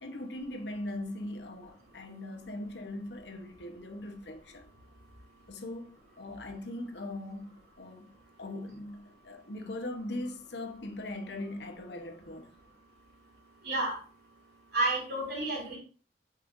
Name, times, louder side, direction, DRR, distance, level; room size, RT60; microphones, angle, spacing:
voice 1, 0.0-4.6 5.5-8.1 8.4-12.5, left 1 dB, 70° left, 1.1 m, -40 dB
voice 2, 13.6-14.0 14.7-15.8, right 2 dB, 60° right, 3.5 m, -30 dB
8.7 x 5.5 x 2.6 m
head